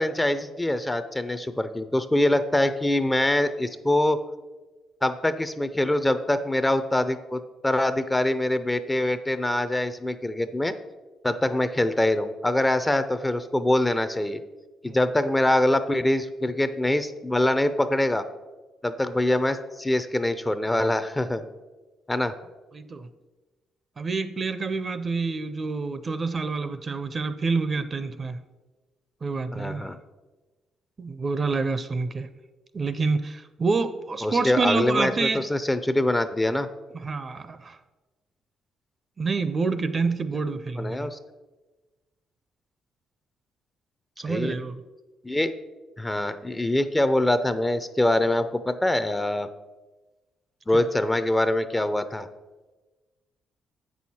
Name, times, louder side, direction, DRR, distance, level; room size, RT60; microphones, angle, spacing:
voice 1, 0.0-4.2 5.0-10.7 11.2-14.4 14.8-18.2 18.8-21.4 22.1-22.3 29.5-30.0 34.2-36.7 40.8-41.2 44.3-44.6 45.2-45.5 46.0-49.5 50.7-52.3, left 1 dB, 15° left, 0.5 m, -24 dB
voice 2, 22.7-23.1 24.0-28.4 29.2-29.9 31.0-32.3 32.7-35.4 36.9-37.8 39.2-41.1 44.2-44.8 50.7-50.8, right 4 dB, 35° right, 0.5 m, -27 dB
8.0 x 6.3 x 4.3 m
cardioid pair, 90°, 0 cm